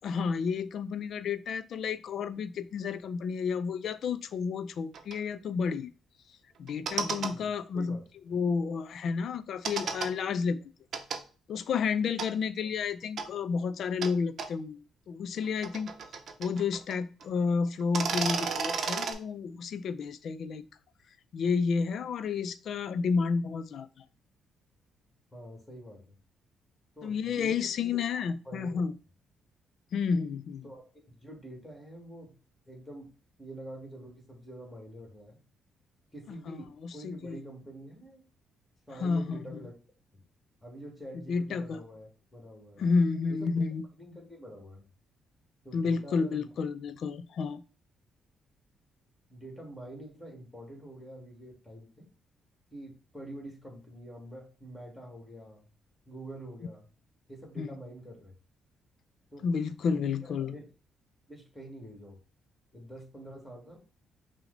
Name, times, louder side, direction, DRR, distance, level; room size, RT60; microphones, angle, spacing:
voice 1, 0.0-5.9 6.6-8.0 8.3-10.6 11.5-15.9 16.4-20.6 21.3-23.9 27.0-28.9 29.9-30.6 36.3-36.6 36.8-37.4 39.0-39.6 41.3-41.8 42.8-43.8 45.7-47.6 57.6-57.7 59.4-60.6, left 5 dB, 65° left, 0.4 m, -31 dB
sound 1, 4.9-5.1 6.7-7.3 9.6-10.1 10.9-11.2 12.2-12.3 13.2-13.3 14.0-14.1 14.4-14.5 15.4-17.0 17.2-17.3 17.8-19.1, right 5 dB, 60° right, 0.6 m, -32 dB
voice 2, 6.9-8.0 12.6-12.7 25.3-26.2 27.0-28.8 30.6-32.4 32.7-33.1 33.4-35.4 36.1-38.2 38.9-39.7 40.1-40.2 40.6-42.8 43.3-43.7 44.0-44.9 45.6-46.5 49.3-52.1 52.7-55.6 56.1-56.8 57.3-58.4 59.3-59.5 59.9-60.6 61.3-62.2 62.7-63.8, right 1 dB, 10° left, 1.7 m, -46 dB
5.8 x 2.1 x 3.8 m
cardioid pair, 90°, 0 cm